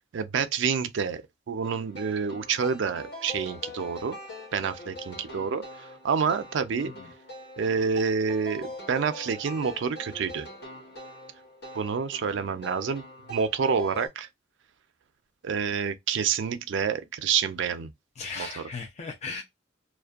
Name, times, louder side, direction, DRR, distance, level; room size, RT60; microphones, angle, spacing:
voice 1, 0.1-1.2 1.5-4.2 4.5-6.9 7.6-10.5 11.7-13.0 13.3-14.3 15.4-17.9 18.4-18.6, right 6 dB, 65° right, 0.4 m, -28 dB
sound 1, 1.6-14.1, left 1 dB, 60° left, 1.1 m, -43 dB
voice 2, 18.2-19.4, left 4 dB, 35° left, 0.4 m, -37 dB
2.5 x 2.1 x 2.3 m
head